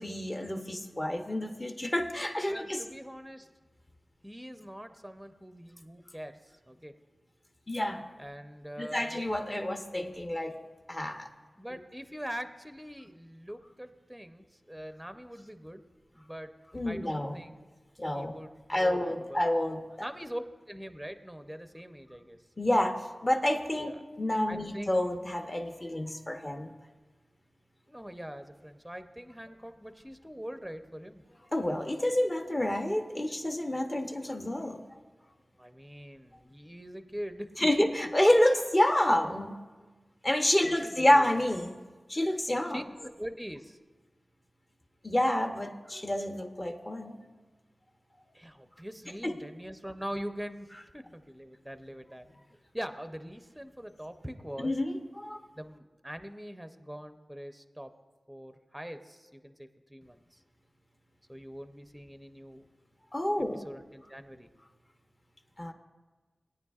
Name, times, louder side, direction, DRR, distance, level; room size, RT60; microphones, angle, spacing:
voice 1, 0.0-2.8 7.7-8.0 8.8-10.5 10.9-11.3 16.7-17.4 18.0-18.3 18.7-20.1 22.6-22.9 23.2-23.9 24.2-26.7 31.5-34.8 37.6-39.5 40.2-41.8 42.1-42.8 45.0-47.2 49.2-49.3 54.6-55.4 63.1-63.6 65.6-65.7, left 1 dB, 30° left, 4 dB, 0.9 m, -28 dB
voice 2, 2.5-3.5 4.2-6.4 6.7-6.9 8.2-9.2 11.6-15.8 16.1-16.5 16.9-17.7 18.1-19.4 20.0-22.4 23.8-24.0 24.5-25.0 27.9-31.2 35.6-37.5 40.6-41.2 42.7-42.8 43.2-43.8 48.3-52.3 52.7-54.7 55.6-57.9 58.3-60.4 61.3-62.6 63.5-64.5, equal, 5° right, 8 dB, 0.6 m, -43 dB
19.5 x 9.6 x 2.4 m, 1.3 s
wide cardioid pair, 80°, 0 cm